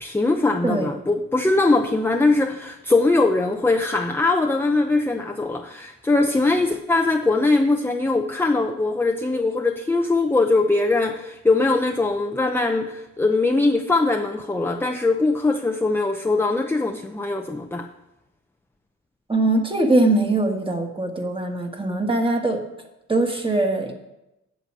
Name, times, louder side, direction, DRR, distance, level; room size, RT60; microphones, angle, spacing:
voice 1, 0.0-17.9, left 3 dB, 10° left, 4 dB, 0.6 m, -21 dB
voice 2, 0.6-1.0 19.3-22.6 23.1-23.9, right 2 dB, 15° right, 3 dB, 1.7 m, -21 dB
8.1 x 7.0 x 7.6 m, 0.94 s
cardioid pair, 90°, 30 cm